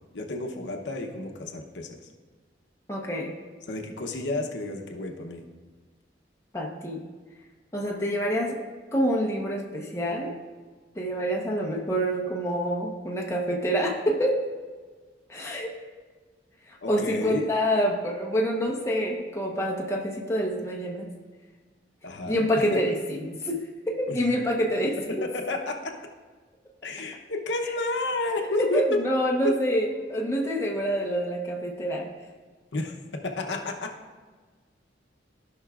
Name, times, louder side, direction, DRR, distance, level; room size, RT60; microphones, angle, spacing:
voice 1, 0.1-2.0 3.7-5.5 16.8-17.5 22.0-22.4 22.7-22.8 24.1-24.2 25.1-25.9 26.8-29.0 29.4-29.5 32.7-32.9 33.2-33.9, left 2 dB, 90° left, 3 dB, 0.9 m, -30 dB
voice 2, 2.9-3.3 6.5-7.0 7.7-8.6 8.9-10.3 11.0-14.4 15.3-15.7 16.9-21.1 22.2-23.6 23.9-25.3 28.6-32.1, equal, 15° left, -2 dB, 1.0 m, -27 dB
15.0 x 5.7 x 2.5 m, 1.4 s
head